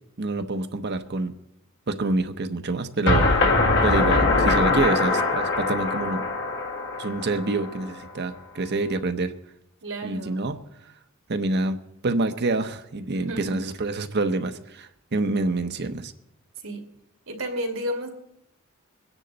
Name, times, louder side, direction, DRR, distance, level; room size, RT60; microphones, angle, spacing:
voice 1, 0.2-1.3 1.9-3.4 3.8-6.3 7.0-9.3 10.0-10.6 11.3-16.1, right 2 dB, 55° right, 8 dB, 0.9 m, -27 dB
sound 1, 3.1-8.0, left 3 dB, 60° left, 1.8 m, -22 dB
voice 2, 9.8-10.4 13.3-13.6 16.6-16.9 17.3-18.1, equal, 80° right, 3 dB, 2.5 m, -31 dB
23.0 x 9.9 x 4.0 m, 0.80 s
head